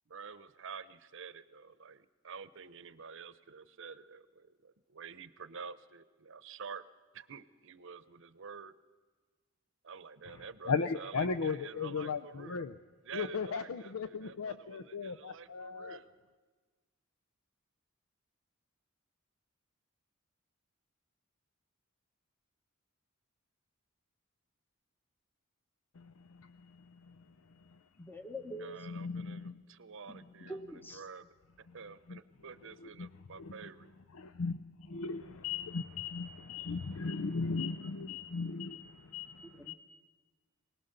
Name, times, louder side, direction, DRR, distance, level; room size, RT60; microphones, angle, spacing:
voice 1, 0.1-6.8 7.1-8.7 9.8-12.7 13.0-16.1 28.6-31.2 31.6-33.9, right 6 dB, 65° right, 14 dB, 0.8 m, -49 dB
voice 2, 10.7-12.7 13.1-16.0 26.0-27.2 28.8-29.5 32.1-32.2 33.0-33.1 33.4-33.5 34.2-39.7, left 5 dB, 85° left, 12 dB, 0.6 m, -37 dB
voice 3, 28.0-28.7 30.1-30.2 30.5-31.0 39.6-39.7, equal, 10° left, 7 dB, 1.1 m, -44 dB
24.0 x 18.5 x 6.7 m, 1.4 s
head